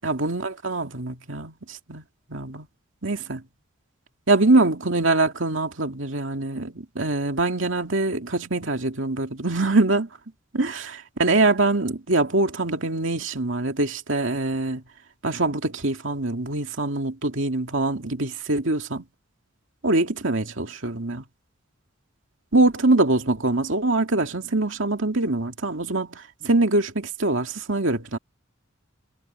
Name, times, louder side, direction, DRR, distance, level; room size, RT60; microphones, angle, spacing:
voice 1, 0.0-2.0 2.3-2.7 3.0-3.4 4.3-10.1 10.5-14.8 15.2-19.0 19.8-21.2 22.5-28.2, right 2 dB, 65° right, 2.5 m, -23 dB
head